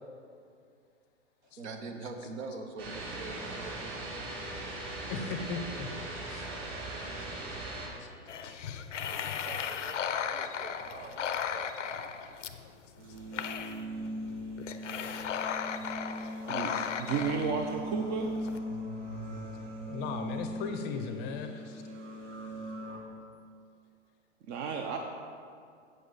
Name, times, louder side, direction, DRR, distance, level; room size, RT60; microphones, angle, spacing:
voice 1, 1.4-4.2 9.1-12.1, right 3 dB, 65° right, 5 dB, 1.1 m, -44 dB
sound 1, 2.8-7.9, right 2 dB, 45° right, 2.3 m, -39 dB
voice 2, 5.1-5.9 6.2-6.5 7.2-7.3 8.0-8.1 12.2-12.3 19.9-21.8, left 5 dB, 30° left, 7 dB, 0.6 m, -37 dB
sound 2, 8.3-18.6, left 7 dB, 85° left, 0.6 m, -36 dB
sound 3, 13.0-23.0, equal, 80° right, 1.5 m, -40 dB
voice 3, 16.5-18.3 24.5-25.0, right 6 dB, 25° right, 3 dB, 0.5 m, -33 dB
8.1 x 7.5 x 3.9 m, 2.3 s
hypercardioid pair, 115°, 36 cm